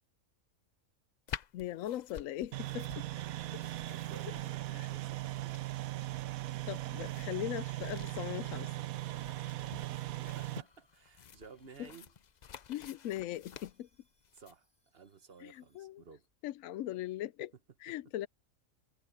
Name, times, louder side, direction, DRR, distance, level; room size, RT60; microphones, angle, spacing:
sound 1, 1.3-14.5, left 8 dB, 55° left, 0.5 m, -51 dB
voice 1, 1.5-3.1 4.7-4.9 6.7-8.7 11.8-11.9 12.7-13.9 15.4-16.0 16.4-17.5 17.8-18.3, left 13 dB, 75° left, 0.9 m, -39 dB
sound 2, 2.5-10.6, right 17 dB, 85° right, 1.1 m, -39 dB
voice 2, 3.9-5.6 10.2-12.1 14.3-14.7 14.9-16.3, right 5 dB, 45° right, 1.4 m, -55 dB
sound 3, 8.7-15.8, equal, 15° left, 8.0 m, -77 dB
omnidirectional pair, 1.4 m